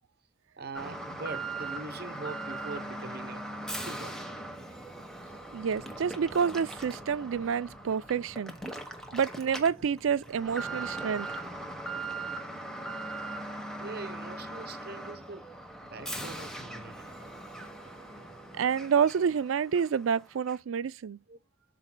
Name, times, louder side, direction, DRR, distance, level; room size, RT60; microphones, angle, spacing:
voice 1, 0.6-3.6 3.8-4.2 8.9-9.2 13.8-15.5 15.8-17.2 21.3-21.4, right 3 dB, 50° right, 0.9 m, -43 dB
Alarm, 0.7-19.4 19.7-19.8 20.5-20.6, right 2 dB, 5° left, 1.1 m, -40 dB
voice 2, 5.5-8.6 9.1-11.4 18.5-21.2, right 7 dB, 85° right, 0.4 m, -28 dB
12.0 x 4.3 x 2.2 m
head